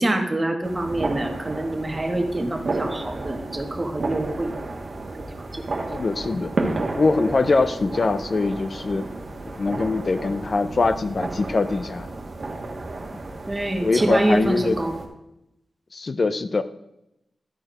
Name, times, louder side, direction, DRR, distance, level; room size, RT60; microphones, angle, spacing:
voice 1, 0.0-4.5 5.1-5.6 13.5-14.9, right 1 dB, 20° right, 4 dB, 1.2 m, -26 dB
sound 1, 0.6-15.1, right 2 dB, 45° right, 1.3 m, -32 dB
voice 2, 5.9-6.5 7.0-9.1 9.6-12.1 13.8-14.8 15.9-16.6, left 3 dB, 40° left, 12 dB, 0.4 m, -22 dB
12.0 x 4.5 x 4.9 m, 0.85 s
wide cardioid pair, 120°, 0 cm